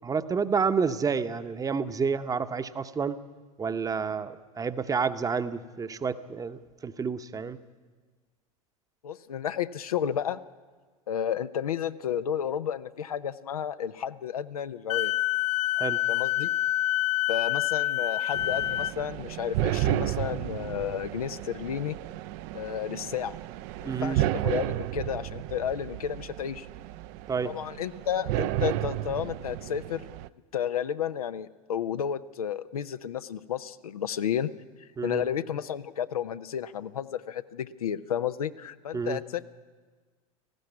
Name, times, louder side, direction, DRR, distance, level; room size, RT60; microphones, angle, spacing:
voice 1, 0.0-3.2 3.6-7.6 15.8-16.0 23.8-24.2 27.3-27.5 35.0-35.2 38.9-39.2, right 5 dB, 20° right, 11 dB, 0.9 m, -29 dB
voice 2, 9.0-10.4 11.1-15.1 16.1-16.5 17.3-22.0 22.5-23.4 23.8-26.7 27.4-30.0 30.5-34.5 35.0-39.4, left 9 dB, 75° left, 12 dB, 0.7 m, -32 dB
Wind instrument woodwind instrument, 14.9-18.9, left 15 dB, 35° left, 0.5 m, -27 dB
sound 1, 18.3-30.3, right 14 dB, 50° right, 0.5 m, -32 dB
18.5 x 15.0 x 9.5 m, 1.4 s
figure-of-eight pair, 80°, 19 cm